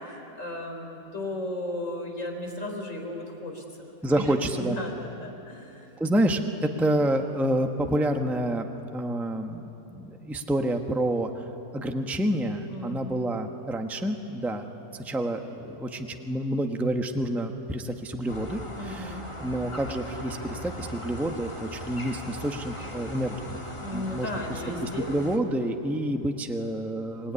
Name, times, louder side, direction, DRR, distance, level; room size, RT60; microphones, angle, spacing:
voice 1, 0.0-5.9 12.7-13.3 18.8-19.3 23.8-25.1, left 1 dB, 50° left, 2 dB, 4.1 m, -35 dB
voice 2, 4.0-4.8 6.0-8.7 8.9-11.3 11.7-14.7 14.9-23.6 23.9-27.3, right 1 dB, ahead, 4 dB, 1.0 m, -28 dB
sound 1, 18.3-25.4, left 1 dB, 15° left, 2.1 m, -39 dB
26.0 x 20.0 x 9.9 m, 2.9 s
omnidirectional pair, 1.8 m